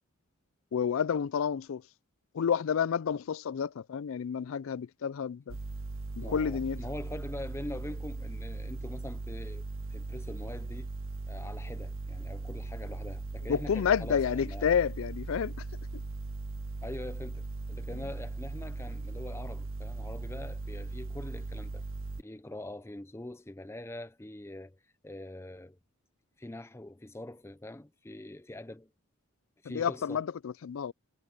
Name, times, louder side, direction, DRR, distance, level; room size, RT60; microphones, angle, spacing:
voice 1, 0.7-1.8 2.3-5.6 6.2-6.8 13.5-15.6 29.6-30.9, left 7 dB, 70° left, 0.4 m, -30 dB
sound 1, 5.5-22.2, right 3 dB, 65° right, 0.8 m, -39 dB
voice 2, 6.2-10.9 11.3-14.7 16.8-21.8 22.2-25.8 26.4-28.9 29.6-30.2, left 1 dB, 10° left, 0.5 m, -43 dB
head